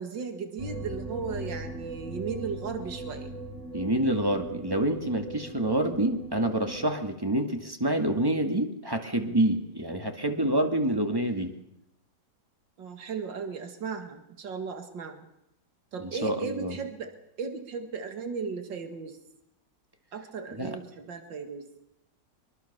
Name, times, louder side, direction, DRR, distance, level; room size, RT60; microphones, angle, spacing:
voice 1, 0.0-3.3 12.8-15.3 15.9-19.2 20.1-21.7, right 5 dB, 90° right, 6 dB, 2.6 m, -36 dB
sound 1, 0.6-6.9, right 2 dB, 40° right, 4.5 m, -39 dB
voice 2, 3.7-11.5 16.0-16.8 20.5-20.8, right 1 dB, 10° right, 6 dB, 2.0 m, -27 dB
24.0 x 23.0 x 6.9 m, 0.83 s
omnidirectional pair, 1.9 m